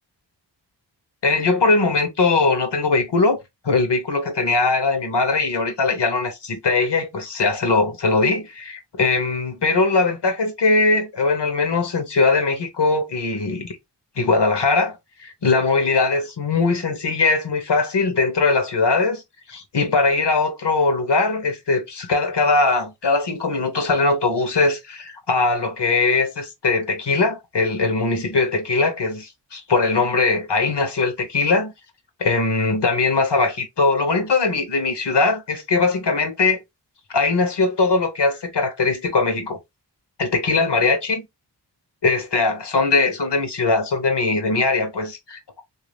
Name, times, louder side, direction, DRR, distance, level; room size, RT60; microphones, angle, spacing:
voice 1, 1.2-13.8 14.2-19.2 19.5-31.7 32.2-36.6 37.1-39.6 40.2-41.2 42.0-45.4, left 3 dB, 70° left, 1.1 m, -20 dB
3.4 x 2.7 x 3.3 m
wide cardioid pair, 60°, 43 cm